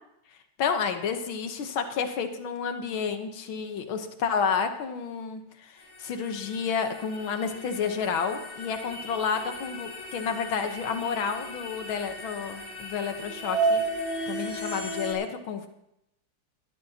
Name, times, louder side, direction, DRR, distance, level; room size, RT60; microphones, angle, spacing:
voice 1, 0.6-13.8 14.3-15.7, left 6 dB, 85° left, 7 dB, 1.9 m, -30 dB
sound 1, 5.8-15.1, right 2 dB, 55° left, 3.4 m, -34 dB
19.5 x 13.0 x 2.8 m, 0.81 s
omnidirectional pair, 2.1 m